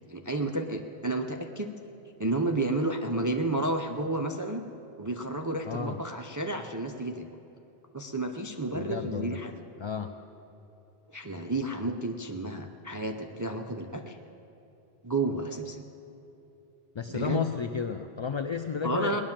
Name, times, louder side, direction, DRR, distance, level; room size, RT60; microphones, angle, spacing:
voice 1, 0.1-1.7 2.2-4.6 5.0-7.3 7.9-9.6 11.1-14.2 15.0-15.8 17.1-17.5 18.8-19.2, right 2 dB, 25° right, 4 dB, 0.5 m, -31 dB
voice 2, 5.7-6.0 8.7-9.4 9.8-10.1 16.9-19.2, left 6 dB, 45° left, 7 dB, 0.4 m, -32 dB
18.5 x 10.5 x 7.4 m, 2.9 s
omnidirectional pair, 1.0 m